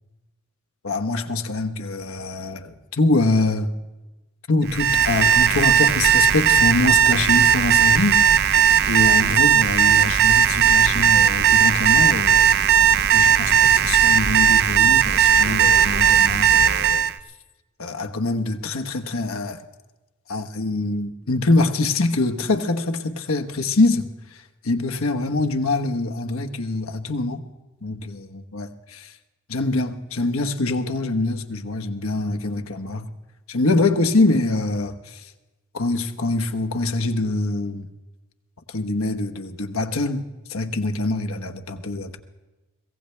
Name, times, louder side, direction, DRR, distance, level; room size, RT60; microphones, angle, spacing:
voice 1, 0.8-3.7 4.5-8.5 8.9-12.5 13.1-17.0 17.8-19.6 20.3-27.4 27.8-29.1 29.5-33.1 33.5-35.2 35.7-37.9 38.7-42.2, left 2 dB, 85° left, 1.2 m, -24 dB
Alarm, 4.7-17.1, right 8 dB, 45° right, 0.5 m, -17 dB
24.0 x 17.0 x 3.4 m
head